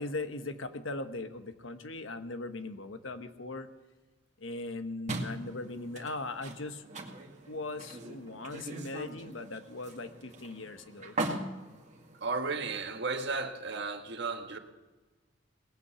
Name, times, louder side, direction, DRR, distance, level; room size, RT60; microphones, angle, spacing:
voice 1, 0.0-3.7 4.4-6.8 7.5-11.2, left 2 dB, 75° left, 1.2 m, -39 dB
sound 1, 5.1-12.8, right 2 dB, 40° right, 2.0 m, -40 dB
voice 2, 12.2-14.6, right 4 dB, 60° right, 1.5 m, -34 dB
19.5 x 8.5 x 6.8 m
head